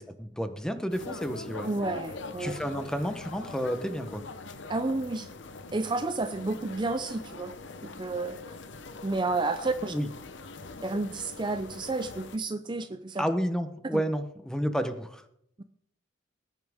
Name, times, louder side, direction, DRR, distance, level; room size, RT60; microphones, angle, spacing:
voice 1, 0.0-1.7 2.4-4.2 9.8-10.1 13.2-15.2, equal, 5° left, 9 dB, 0.8 m, -31 dB
sound 1, 0.9-12.4, left 3 dB, 65° left, 0.9 m, -43 dB
voice 2, 1.6-2.5 4.7-5.3 5.7-7.5 7.8-8.4 9.0-9.9 10.8-13.3 13.9-14.0, right 3 dB, 25° right, 9 dB, 0.5 m, -31 dB
19.5 x 9.5 x 3.6 m, 0.73 s
head